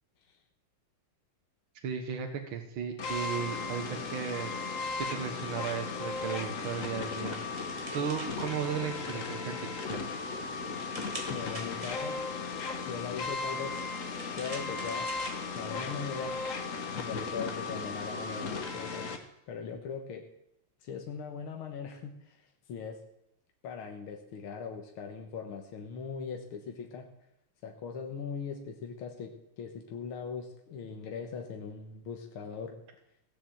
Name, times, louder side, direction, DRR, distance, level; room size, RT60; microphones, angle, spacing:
voice 1, 1.8-4.5 5.0-7.4 7.9-10.1, right 7 dB, 70° right, 4 dB, 2.1 m, -35 dB
sound 1, 3.0-19.2, left 4 dB, 40° left, 1.6 m, -36 dB
sound 2, 6.1-9.3 9.7-12.4 13.3-16.0, right 1 dB, 15° right, 2.2 m, -47 dB
voice 2, 10.8-12.2 12.9-13.8 14.4-15.1 15.6-16.3 17.0-19.2 19.5-20.2 20.8-23.0 23.6-27.1 27.6-32.8, left 6 dB, 80° left, 2 dB, 2.1 m, -40 dB
17.5 x 7.2 x 7.8 m, 0.81 s
omnidirectional pair, 2.3 m